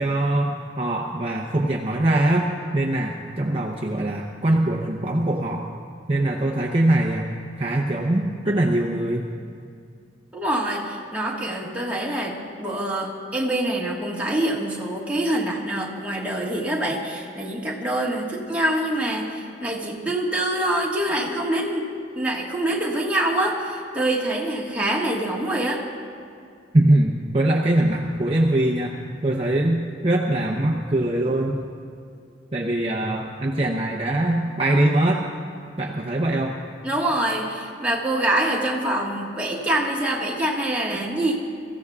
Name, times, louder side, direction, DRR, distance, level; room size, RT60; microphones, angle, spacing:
voice 1, 0.0-2.5 2.7-5.7 6.1-7.3 7.6-9.3 26.7-31.6 32.5-35.2 35.8-36.6, right 1 dB, 30° right, -2 dB, 0.7 m, -22 dB
voice 2, 10.3-21.9 22.1-25.8 36.8-41.3, right 1 dB, 10° right, -4 dB, 1.6 m, -25 dB
23.5 x 14.5 x 2.4 m, 2.3 s
head